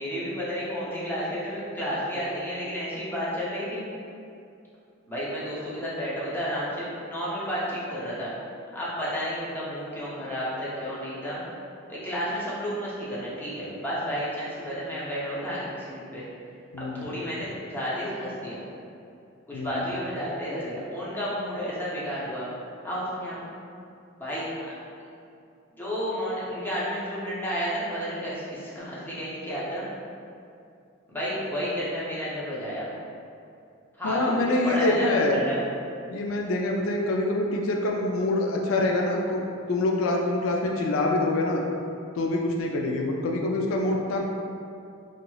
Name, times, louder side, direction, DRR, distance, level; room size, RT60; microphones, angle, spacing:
voice 1, 0.0-3.8 5.1-8.3 8.7-11.4 11.9-16.2 16.8-18.6 19.5-22.5 22.8-23.4 24.2-24.5 25.7-29.8 31.1-32.9 34.0-35.6, equal, 10° left, -9 dB, 0.6 m, -31 dB
voice 2, 16.7-17.1 19.5-19.8 34.0-35.5 36.1-39.4 39.7-41.6 42.2-44.2, left 2 dB, 85° left, 0 dB, 0.3 m, -25 dB
2.9 x 2.8 x 2.3 m, 2.5 s
head